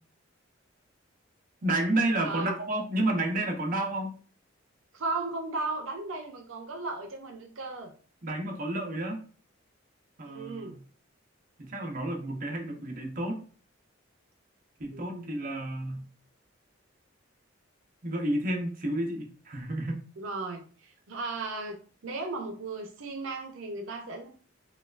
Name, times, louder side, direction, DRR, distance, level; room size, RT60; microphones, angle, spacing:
voice 1, 1.6-4.1 8.2-9.2 10.2-10.8 11.6-13.4 14.8-16.0 18.0-20.0, right 1 dB, 45° right, 1 dB, 0.6 m, -30 dB
voice 2, 2.2-2.5 4.9-7.9 10.2-10.8 14.9-15.4 20.2-24.3, right 3 dB, 80° right, 2 dB, 0.6 m, -36 dB
4.4 x 2.3 x 2.4 m, 0.41 s
head